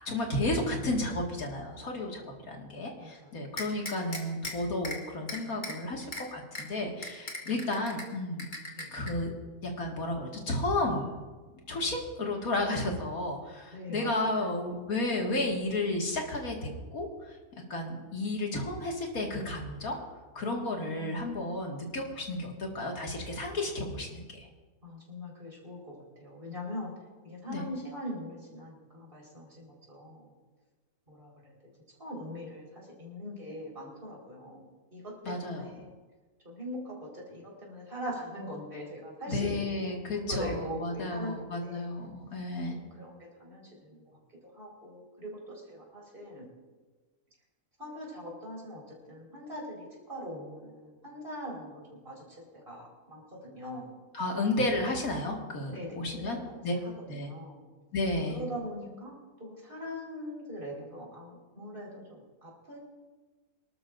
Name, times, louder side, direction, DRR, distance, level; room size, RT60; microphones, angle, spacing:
voice 1, 0.0-8.5 8.9-9.3 9.6-11.1 11.7-17.4 17.7-20.0 20.3-24.5 27.5-27.7 35.2-35.6 39.3-42.7 54.1-56.4 56.6-56.8 57.1-57.3 57.9-58.4, left 2 dB, 60° left, 0 dB, 2.4 m, -32 dB
voice 2, 3.0-3.4 7.4-7.5 8.8-8.9 13.7-14.6 20.7-21.2 24.8-25.9 26.2-26.9 27.2-30.3 31.1-31.5 32.0-34.6 34.9-35.9 36.4-41.9 42.7-44.2 44.5-46.4 47.8-52.2 52.5-53.9 55.7-56.3 56.8-57.7 58.3-59.1 59.4-62.8, equal, 30° right, -3 dB, 4.7 m, -42 dB
sound 1, 3.6-4.5 4.8-5.0 5.3-5.7 6.1-6.2 6.6-6.7 7.0-8.0 8.4-9.1, left 2 dB, 30° left, 1.9 m, -37 dB
25.5 x 12.5 x 2.6 m, 1.3 s
omnidirectional pair, 1.7 m